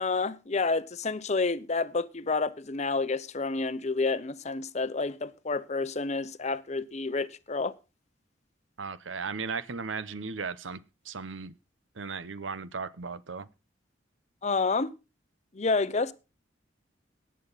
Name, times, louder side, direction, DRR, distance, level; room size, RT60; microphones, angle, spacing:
voice 1, 0.0-7.7 14.4-14.9 15.5-16.1, left 3 dB, 35° left, 0.7 m, -29 dB
voice 2, 8.8-10.8 11.0-11.6 12.0-13.5, right 5 dB, 85° right, 0.9 m, -36 dB
18.0 x 7.7 x 4.1 m
head